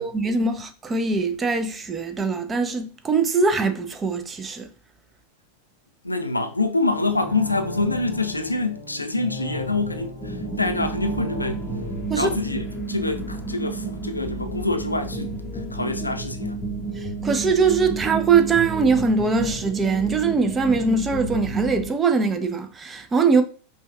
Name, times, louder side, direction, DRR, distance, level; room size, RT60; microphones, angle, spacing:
voice 1, 0.0-4.7 12.1-12.3 17.0-23.4, right 4 dB, 20° right, 0.4 m, -22 dB
voice 2, 6.0-11.7 12.1-16.6, left 3 dB, 85° left, 0.4 m, -26 dB
sound 1, 6.9-13.8 14.1-14.2, left 1 dB, 70° right, 1.1 m, -38 dB
sound 2, 10.2-21.9, right 3 dB, 20° left, 0.7 m, -31 dB
5.1 x 2.2 x 2.3 m
figure-of-eight pair, 90°, 0 cm